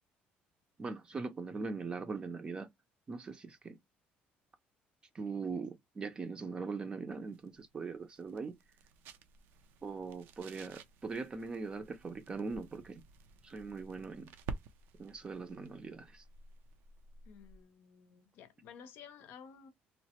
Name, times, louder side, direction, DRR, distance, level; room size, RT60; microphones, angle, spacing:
voice 1, 0.8-2.7 3.1-3.8 5.1-8.6 9.8-13.0 13.4-14.3 15.0-16.2, right 4 dB, 25° right, 0.5 m, -41 dB
sound 1, 7.1-17.7, right 5 dB, 75° right, 0.5 m, -51 dB
voice 2, 17.3-19.7, left 7 dB, 65° left, 0.6 m, -54 dB
3.1 x 2.1 x 2.8 m
cardioid pair, 145°, 4 cm